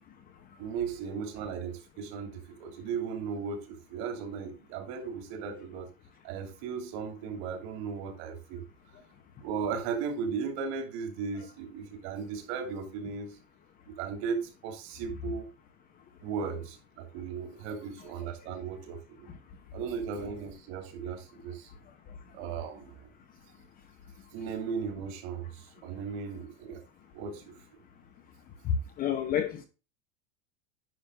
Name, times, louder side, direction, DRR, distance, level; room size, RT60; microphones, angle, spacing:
voice 1, 0.6-5.9 6.2-8.6 9.4-13.4 13.9-15.5 16.2-19.3 19.7-21.7 22.3-23.1 24.3-26.8 27.1-27.5, right 6 dB, 45° right, 2.8 m, -36 dB
voice 2, 28.6-29.7, left 8 dB, 25° left, 0.9 m, -29 dB
10.0 x 6.1 x 3.7 m
supercardioid pair, 170°, 38 cm